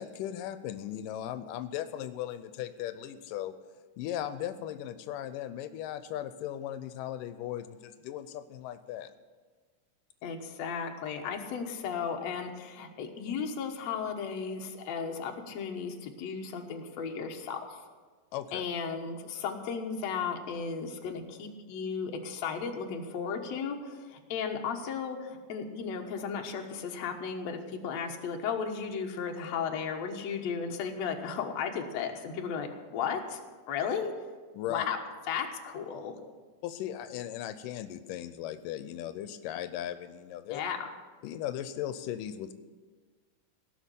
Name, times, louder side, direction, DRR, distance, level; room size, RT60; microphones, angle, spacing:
voice 1, 0.0-3.5 4.0-9.1 18.3-18.6 34.5-34.9 36.6-40.6 41.2-42.5, left 11 dB, 90° left, 11 dB, 2.3 m, -37 dB
voice 2, 10.2-17.8 18.5-33.4 33.7-34.1 34.7-35.0 35.3-36.2 40.5-40.9, left 6 dB, 60° left, 2 dB, 2.3 m, -35 dB
17.5 x 6.5 x 9.9 m, 1.5 s
omnidirectional pair, 3.8 m